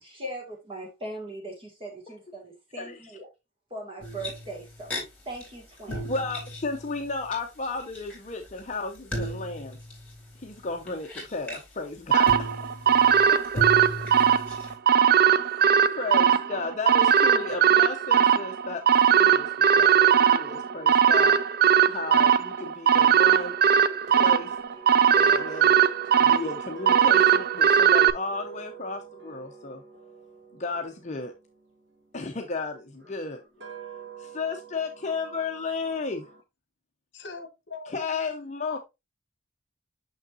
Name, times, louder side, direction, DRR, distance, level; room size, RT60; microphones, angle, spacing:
voice 1, 0.0-3.3 3.7-6.0, right 2 dB, 25° right, 2.0 m, -39 dB
sound 1, 4.0-5.0 5.3-5.5 5.8-7.3 7.6-11.6 12.3-14.7, equal, 5° left, 3.1 m, -36 dB
voice 2, 5.9-9.8 10.4-12.3 13.1-13.4 15.4-18.8 19.1-21.4 21.9-23.6 24.1-24.5 25.1-25.7 26.2-29.8 30.5-31.3 32.1-33.4 34.2-36.2 37.9-38.8, left 3 dB, 35° left, 0.7 m, -33 dB
sound 2, 12.1-28.1, right 8 dB, 50° right, 0.4 m, -20 dB
sound 3, 24.0-32.2 32.9-36.4, right 7 dB, 70° right, 1.6 m, -45 dB
voice 3, 37.1-38.8, left 4 dB, 60° left, 1.3 m, -43 dB
6.3 x 6.2 x 2.6 m
head